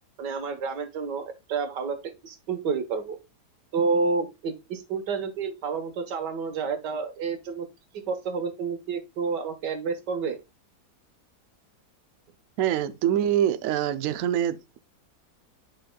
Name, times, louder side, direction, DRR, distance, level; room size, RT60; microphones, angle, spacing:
voice 1, 0.2-2.0 2.2-3.2 3.7-7.7 8.1-10.4, right 4 dB, 90° right, 1.9 m, -29 dB
voice 2, 12.6-14.8, right 10 dB, 65° right, 0.9 m, -25 dB
10.0 x 5.0 x 2.2 m
omnidirectional pair, 1.8 m